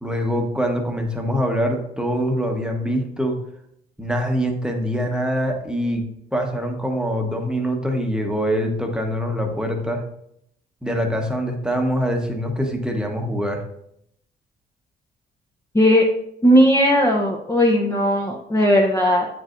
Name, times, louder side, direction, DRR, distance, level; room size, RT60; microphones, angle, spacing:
voice 1, 0.0-3.4 4.0-6.0 6.3-10.0 10.8-13.6, equal, 5° right, 2 dB, 1.1 m, -24 dB
voice 2, 16.4-19.3, equal, 15° left, -2 dB, 0.8 m, -17 dB
8.6 x 4.8 x 2.6 m, 0.74 s
cardioid pair, 90°, 20 cm